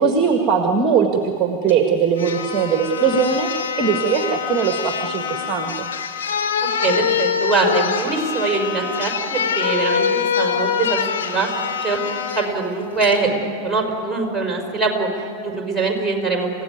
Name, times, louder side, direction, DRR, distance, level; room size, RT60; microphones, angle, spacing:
voice 1, 0.0-5.9, right 6 dB, 25° right, 4 dB, 1.8 m, -20 dB
sound 1, 1.7-1.8 2.2-12.5 13.0-13.2, left 7 dB, 65° left, 1.9 m, -24 dB
voice 2, 6.8-11.5 11.8-12.0 12.4-16.5, right 3 dB, 5° right, 0 dB, 5.5 m, -23 dB
29.0 x 16.5 x 9.6 m, 2.5 s
figure-of-eight pair, 90°, 0 cm